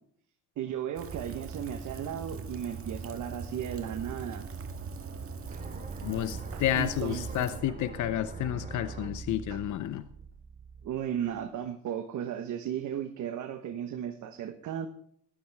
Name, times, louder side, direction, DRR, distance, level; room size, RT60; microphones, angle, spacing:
voice 1, 0.6-4.5 5.5-5.6 6.0-6.1 6.5-7.3 9.5-9.6 10.8-14.9, right 9 dB, 75° right, 6 dB, 1.2 m, -35 dB
Rain, 1.0-7.6, right 5 dB, 45° right, 1.8 m, -41 dB
sound 1, 5.5-11.4, right 4 dB, 25° right, 2.7 m, -43 dB
voice 2, 6.0-10.0, left 12 dB, 75° left, 12 dB, 0.8 m, -31 dB
15.5 x 11.5 x 3.5 m, 0.65 s
cardioid pair, 90°, 30 cm